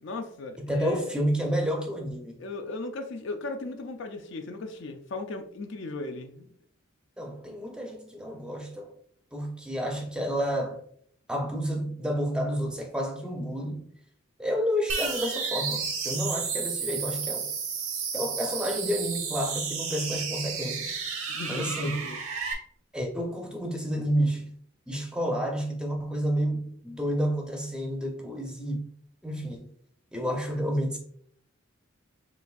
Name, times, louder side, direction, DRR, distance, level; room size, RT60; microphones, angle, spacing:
voice 1, 0.0-1.1 2.4-6.5 21.3-22.2, left 2 dB, 55° left, 0.5 m, -37 dB
voice 2, 0.6-2.4 7.2-8.9 9.3-10.8 11.3-13.9 14.4-17.5 18.1-21.0 21.5-22.0 22.9-24.5 24.9-28.8 29.2-29.7 30.1-31.0, equal, 5° right, 0.6 m, -30 dB
sound 1, 14.9-22.5, right 5 dB, 90° right, 1.1 m, -32 dB
6.8 x 2.6 x 2.4 m
head